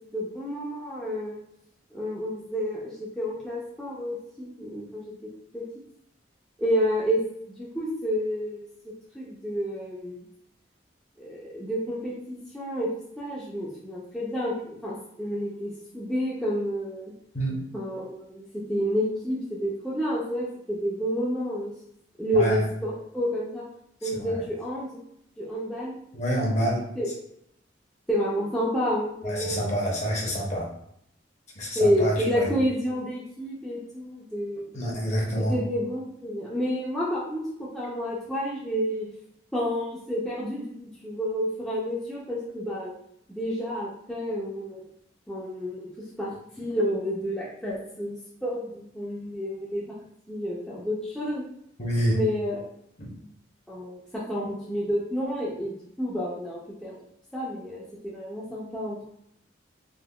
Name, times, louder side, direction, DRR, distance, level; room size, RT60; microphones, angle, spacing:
voice 1, 0.1-1.4 1.9-5.1 5.5-5.6 6.6-7.2 7.5-8.6 9.1-10.2 11.2-12.9 13.2-17.0 17.7-21.7 22.2-23.6 24.0-25.0 25.4-25.9 27.0-27.1 28.1-29.8 31.8-34.7 35.4-39.1 39.5-42.9 43.3-44.8 45.3-45.9 46.2-46.3 46.6-48.2 48.4-49.8 50.3-51.4 52.1-52.6 53.7-57.0 57.3-59.1, equal, 5° left, -7 dB, 0.4 m, -29 dB
voice 2, 22.3-22.7 24.1-24.3 26.1-26.8 29.2-30.7 31.6-32.5 34.7-35.6 51.8-52.2 53.0-53.1, equal, 35° left, -2 dB, 0.7 m, -27 dB
3.5 x 2.1 x 2.2 m, 0.72 s
head